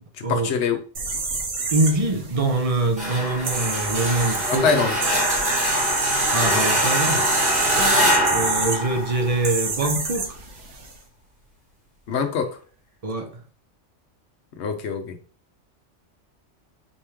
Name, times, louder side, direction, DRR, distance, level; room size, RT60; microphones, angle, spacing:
voice 1, 0.2-0.8 4.5-4.9 12.1-12.6 14.6-15.2, left 5 dB, 65° left, 1.0 m, -24 dB
sound 1, 0.9-10.9, right 4 dB, 75° right, 1.3 m, -28 dB
voice 2, 1.7-4.8 6.3-7.3 8.3-10.3 13.0-13.3, right 2 dB, 35° right, 0.6 m, -24 dB
sound 2, 3.0-9.7, equal, 5° right, 1.5 m, -23 dB
sound 3, 7.7-8.3, left 2 dB, 20° left, 0.7 m, -34 dB
4.3 x 3.1 x 3.5 m
omnidirectional pair, 1.3 m